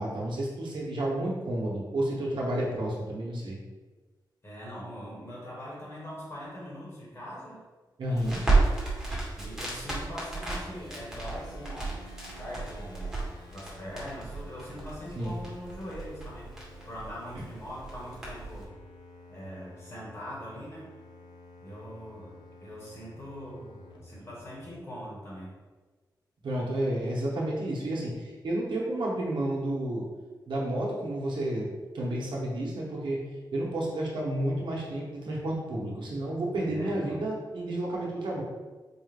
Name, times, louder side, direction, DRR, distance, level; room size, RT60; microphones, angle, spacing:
voice 1, 0.0-3.6 8.0-8.4 15.1-15.4 17.3-17.4 26.4-30.1 30.5-31.7 31.9-33.2 33.5-38.4, right 1 dB, 90° right, -3 dB, 0.9 m, -31 dB
voice 2, 4.4-7.6 8.1-8.7 9.4-13.2 13.5-16.5 16.8-18.8 19.3-20.9 21.6-25.6 36.7-37.2, equal, 35° left, -6 dB, 1.4 m, -42 dB
Crackle, 8.1-18.6, right 3 dB, 10° right, 1.2 m, -32 dB
sound 1, 10.5-24.6, left 2 dB, 70° left, 0.7 m, -51 dB
4.3 x 2.4 x 3.4 m, 1.3 s
wide cardioid pair, 125°, 8 cm